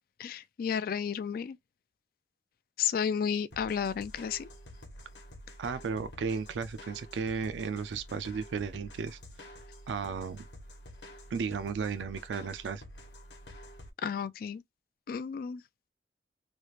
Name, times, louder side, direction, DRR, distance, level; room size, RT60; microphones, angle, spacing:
voice 1, 0.2-1.6 2.8-4.5 14.0-14.6 15.1-15.6, left 7 dB, 55° left, 0.3 m, -32 dB
sound 1, 3.5-13.9, left 1 dB, 75° left, 1.1 m, -49 dB
voice 2, 5.6-9.2 9.9-10.5 11.3-12.8, right 5 dB, 85° right, 0.4 m, -34 dB
3.2 x 2.4 x 3.0 m
head